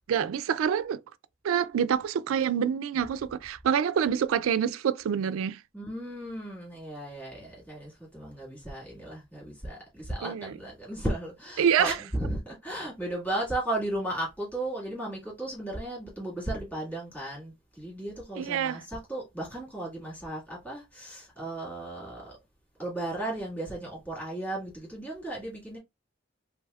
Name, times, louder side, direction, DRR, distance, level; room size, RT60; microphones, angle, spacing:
voice 1, 0.1-1.0 1.4-5.6 10.2-10.5 11.6-11.9 18.4-18.8, right 8 dB, 70° right, 0.3 m, -26 dB
voice 2, 5.7-22.4 22.8-25.8, right 1 dB, 5° left, 1.6 m, -35 dB
3.4 x 3.3 x 2.2 m
head